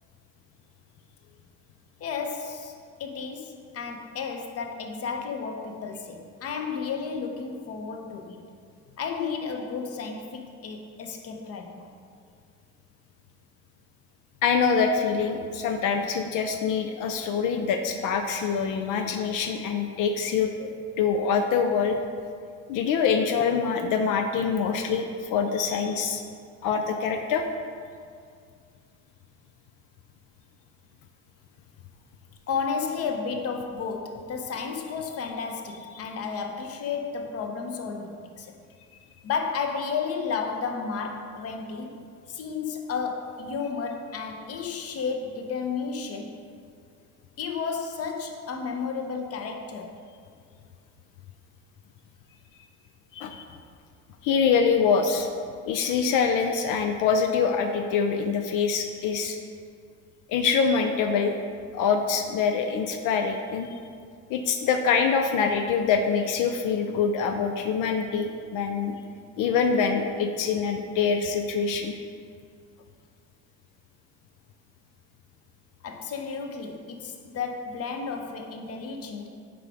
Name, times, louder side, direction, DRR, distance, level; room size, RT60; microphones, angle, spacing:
voice 1, 2.0-2.7 3.0-8.4 9.0-11.9 32.5-38.6 39.2-42.0 42.3-46.4 47.4-49.9 75.8-79.3, left 5 dB, 50° left, 3 dB, 0.8 m, -32 dB
voice 2, 14.4-20.7 21.0-22.0 22.7-26.2 26.6-27.4 53.1-53.4 54.2-55.3 55.7-59.4 60.3-61.3 61.7-63.7 64.3-68.9 69.4-72.0, left 6 dB, 85° left, 5 dB, 0.6 m, -25 dB
9.6 x 5.0 x 3.5 m, 2.2 s
cardioid pair, 140°, 30 cm